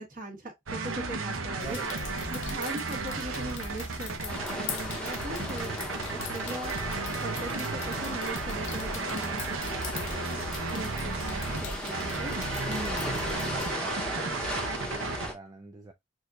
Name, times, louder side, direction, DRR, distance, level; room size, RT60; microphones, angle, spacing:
voice 1, 0.0-1.8 2.3-6.7 7.2-10.4 10.7-12.3 12.6-13.1, right 1 dB, 40° right, 1.5 m, -40 dB
sound 1, 0.7-15.3, right 3 dB, 85° right, 0.8 m, -34 dB
sound 2, 1.6-13.7, left 6 dB, 65° left, 0.7 m, -43 dB
voice 2, 1.6-2.0 9.1-9.4 13.5-15.9, right 2 dB, 20° right, 0.3 m, -44 dB
sound 3, 4.3-15.3, equal, 5° left, 0.8 m, -37 dB
6.2 x 2.6 x 2.4 m
head